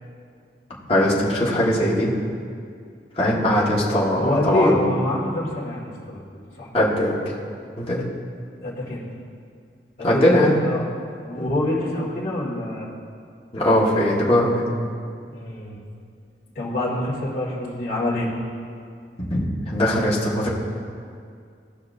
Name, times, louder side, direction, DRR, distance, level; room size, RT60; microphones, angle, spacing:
voice 1, 0.9-2.1 3.2-4.8 6.7-7.2 7.8-8.0 10.0-10.5 11.3-11.5 13.5-14.7 19.3-20.5, left 1 dB, 35° left, -6 dB, 1.5 m, -20 dB
voice 2, 4.2-6.8 8.6-9.1 10.0-10.9 11.2-12.9 15.3-15.8 16.6-18.3, left 1 dB, 50° left, -8 dB, 2.1 m, -26 dB
17.0 x 5.8 x 2.6 m, 2.3 s
head